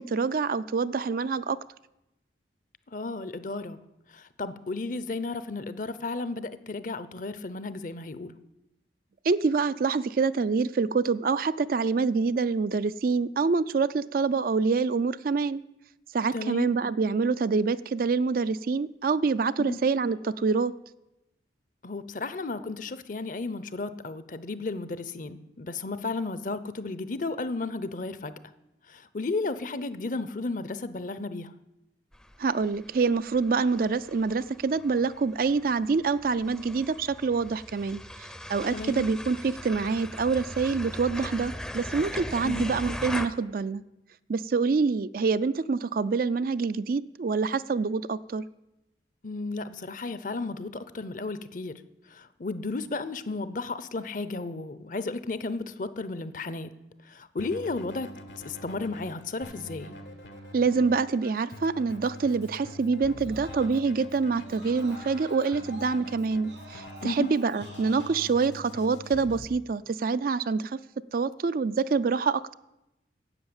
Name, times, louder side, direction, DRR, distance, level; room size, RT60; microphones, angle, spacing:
voice 1, 0.0-1.6 9.2-15.6 16.1-20.7 32.4-43.8 44.3-48.4 60.5-70.8 71.1-72.5, right 4 dB, 50° right, 14 dB, 0.4 m, -26 dB
voice 2, 2.9-3.8 4.1-8.3 16.3-16.7 19.6-19.8 21.8-28.3 28.9-31.5 38.7-39.1 42.4-42.7 49.2-51.7 52.1-56.7 57.1-58.1 58.4-59.9 67.0-67.3, left 3 dB, 45° left, 14 dB, 0.7 m, -33 dB
sound 1, 32.1-43.3, left 1 dB, 5° left, 0.6 m, -40 dB
Keyboard (musical), 57.4-69.4, left 1 dB, 80° left, 1.5 m, -45 dB
Screaming, 59.4-64.0 64.4-68.2, equal, 85° right, 3.9 m, -49 dB
11.0 x 8.0 x 8.7 m, 0.91 s
head